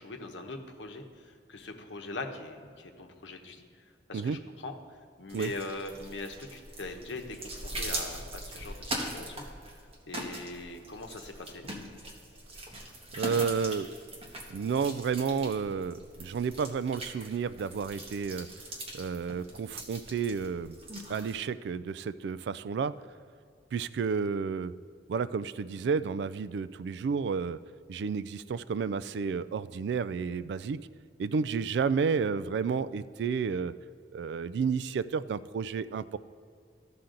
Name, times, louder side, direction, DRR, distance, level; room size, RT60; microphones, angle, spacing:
voice 1, 0.0-3.8 4.1-9.8 10.1-11.7, left 2 dB, 85° left, 5 dB, 0.9 m, -42 dB
sound 1, 5.3-21.4, right 1 dB, 35° right, 1.3 m, -41 dB
voice 2, 13.1-13.9 14.5-18.5 18.9-20.8 21.1-22.9 23.7-24.7 25.1-27.6 27.9-30.8 31.2-33.7 34.1-36.2, right 5 dB, 65° right, 15 dB, 0.3 m, -31 dB
14.0 x 5.8 x 3.8 m, 2.3 s
head